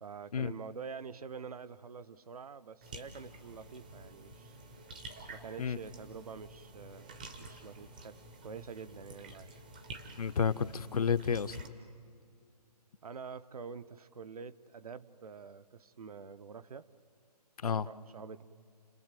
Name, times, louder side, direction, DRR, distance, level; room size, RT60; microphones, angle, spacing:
voice 1, 0.0-4.5 5.3-9.5 13.0-16.9 17.9-18.4, right 6 dB, 60° right, 14 dB, 0.8 m, -47 dB
sound 1, 2.8-11.7, right 2 dB, 10° right, 0.6 m, -50 dB
voice 2, 10.2-11.6 17.6-17.9, left 6 dB, 60° left, 13 dB, 0.7 m, -30 dB
29.5 x 21.0 x 9.1 m, 2.2 s
hypercardioid pair, 175°, 21 cm